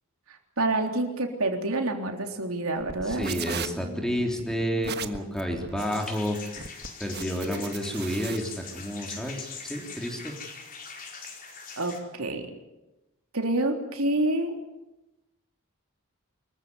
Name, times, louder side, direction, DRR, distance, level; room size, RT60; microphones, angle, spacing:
voice 1, 0.3-3.4 11.8-12.5 13.3-14.5, right 2 dB, 80° right, 3 dB, 3.5 m, -28 dB
sound 1, 2.8-8.4, right 6 dB, 50° right, 1.5 m, -38 dB
voice 2, 3.1-10.3, equal, 5° left, 2 dB, 3.6 m, -30 dB
sound 2, 5.8-12.0, left 5 dB, 40° left, 4.5 m, -42 dB
25.0 x 15.0 x 9.7 m, 0.99 s
head